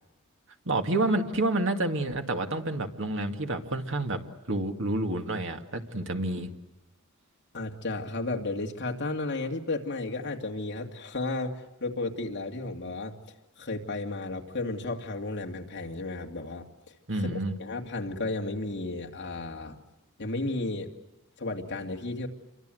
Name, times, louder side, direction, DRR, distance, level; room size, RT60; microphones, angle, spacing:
voice 1, 0.7-4.2 4.5-6.5 17.1-17.5, right 2 dB, 60° right, 5 dB, 2.2 m, -29 dB
voice 2, 7.5-13.1 13.6-16.6 17.1-19.8 20.2-20.9 21.4-22.3, left 2 dB, 55° left, 2 dB, 2.6 m, -33 dB
28.5 x 24.0 x 7.9 m, 1.0 s
head